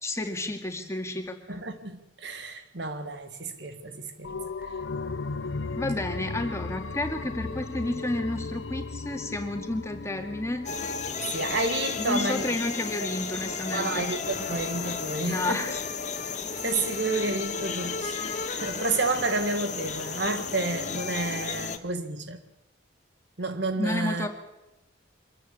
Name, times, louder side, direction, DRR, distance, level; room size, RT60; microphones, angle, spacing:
voice 1, 0.0-1.4 5.8-10.7 12.0-14.1 15.2-15.8 23.8-24.3, left 1 dB, 15° left, 2.2 m, -31 dB
voice 2, 1.5-4.7 11.3-12.4 13.7-15.7 16.6-22.4 23.4-24.3, right 2 dB, 65° right, 1.7 m, -30 dB
sound 1, 4.2-13.6 14.0-14.1, left 4 dB, 85° left, 0.7 m, -37 dB
sound 2, 10.7-21.8, left 5 dB, 40° left, 1.5 m, -33 dB
24.5 x 14.0 x 8.5 m
head